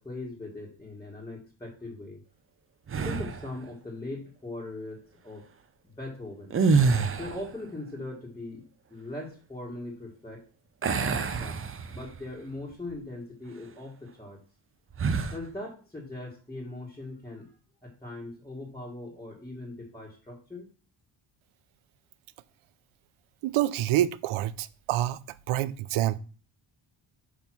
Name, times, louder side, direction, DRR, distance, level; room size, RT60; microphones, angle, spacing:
voice 1, 0.0-2.2 3.0-5.4 6.0-6.6 7.2-8.6 8.9-10.4 11.0-14.4 15.3-17.5 17.8-20.7, left 2 dB, 5° left, 1.4 m, -40 dB
sound 1, 2.9-3.5 6.4-7.5 10.8-12.2 12.7-12.9 14.9-15.4, right 4 dB, 25° right, 0.5 m, -26 dB
voice 2, 23.4-25.2 25.5-26.2, right 13 dB, 75° right, 0.6 m, -27 dB
6.4 x 5.4 x 5.9 m
cardioid pair, 175°, 49 cm